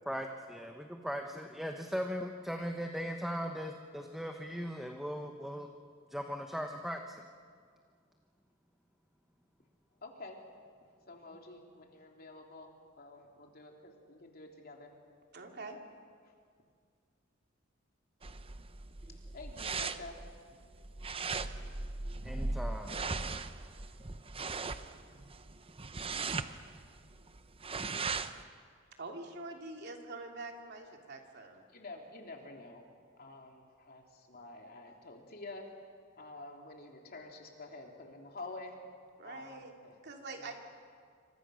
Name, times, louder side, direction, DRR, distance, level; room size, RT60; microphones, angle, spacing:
voice 1, 0.0-5.7 6.1-7.3 22.2-23.0, equal, ahead, 3 dB, 1.1 m, -38 dB
voice 2, 10.0-10.4 11.1-14.9 19.3-20.2 31.7-32.9 33.2-35.7 36.2-38.8 39.2-40.0 40.3-40.5, left 2 dB, 50° left, 1 dB, 3.3 m, -49 dB
voice 3, 15.3-15.8 29.0-31.6 39.2-39.7 40.0-40.5, right 3 dB, 55° right, 2 dB, 2.9 m, -45 dB
sound 1, 18.2-28.4, right 4 dB, 30° right, 0.8 m, -39 dB
27.5 x 25.5 x 6.5 m, 2.1 s
head